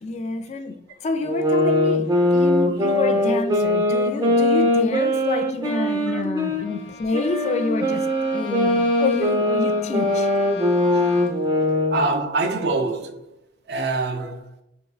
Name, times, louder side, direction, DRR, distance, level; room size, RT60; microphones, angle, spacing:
voice 1, 0.0-2.0 2.3-10.3, left 3 dB, 40° left, 0.3 m, -28 dB
sound 1, 1.2-6.6 7.1-12.0, left 1 dB, 25° right, 0.7 m, -21 dB
Bowed string instrument, 6.6-11.6, left 5 dB, 85° left, 0.7 m, -38 dB
voice 2, 11.9-13.3 13.7-14.5, right 3 dB, 65° right, 0.6 m, -25 dB
5.0 x 3.4 x 2.3 m
head